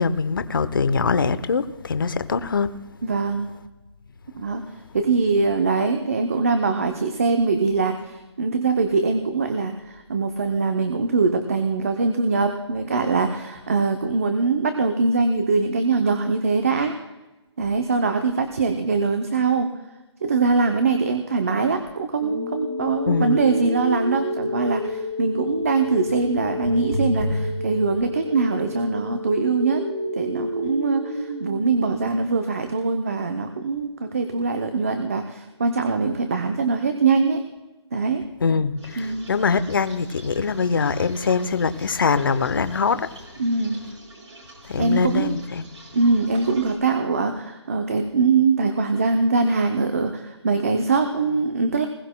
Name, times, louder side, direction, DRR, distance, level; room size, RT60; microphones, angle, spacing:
voice 1, 0.0-2.7 23.1-23.4 38.4-43.1 44.7-45.6, left 5 dB, 50° left, 0.7 m, -23 dB
voice 2, 3.0-3.5 4.3-4.6 4.9-17.0 17.6-19.7 20.2-37.5 37.9-38.3 39.0-39.3 43.4-43.8 44.7-45.4 45.9-51.9, right 4 dB, 30° right, 0.6 m, -22 dB
sound 1, 22.2-32.2, left 1 dB, 65° right, 3.6 m, -29 dB
sound 2, 38.8-46.8, right 2 dB, 90° right, 5.1 m, -46 dB
20.5 x 16.0 x 2.2 m
hypercardioid pair, 175°, 15 cm